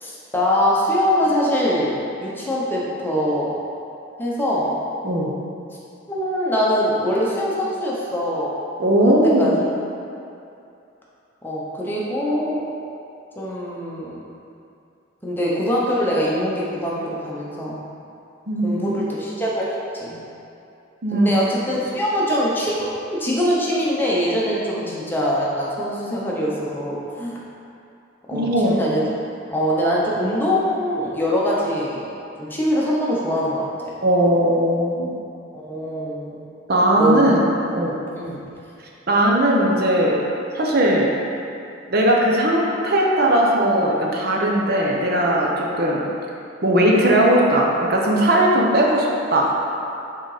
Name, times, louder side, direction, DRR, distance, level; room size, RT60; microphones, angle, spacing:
voice 1, 0.0-3.5 4.2-4.7 6.1-8.5 8.9-9.5 11.4-12.6 13.4-14.2 15.2-17.8 18.6-20.1 21.1-27.3 28.3-29.1 29.5-32.0 32.4-33.7 35.5-36.4 37.0-37.3 38.1-38.4, equal, 10° left, -6 dB, 0.9 m, -23 dB
voice 2, 8.8-9.6 18.5-19.0 21.0-21.3 28.3-28.8 34.0-35.1 36.7-37.5 37.7-38.0 39.1-40.2 40.5-41.1 41.9-46.0 46.6-49.5, right 1 dB, 50° right, -2 dB, 0.7 m, -18 dB
6.5 x 3.9 x 4.9 m, 2.6 s
head